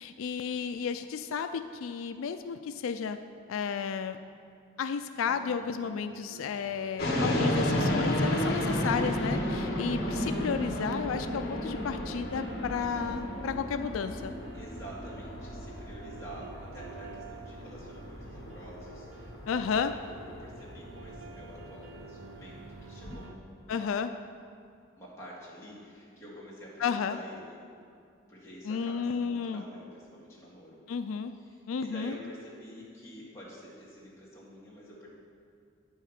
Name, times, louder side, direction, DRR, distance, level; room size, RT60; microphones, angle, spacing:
voice 1, 0.0-3.2 3.5-4.2 4.8-14.3 19.5-20.0 23.7-24.1 26.8-27.2 28.6-29.6 30.9-31.3 31.7-32.2, left 6 dB, 90° left, 9 dB, 0.4 m, -32 dB
sound 1, 5.3-23.4, right 5 dB, 85° right, 0.6 m, -50 dB
sound 2, 7.0-23.2, left 1 dB, 50° left, 1.5 m, -33 dB
voice 2, 14.5-23.4 23.7-23.9 25.0-27.6 28.3-30.8 31.3-35.1, equal, 15° left, -7 dB, 2.1 m, -48 dB
9.5 x 6.3 x 5.8 m, 2.4 s
head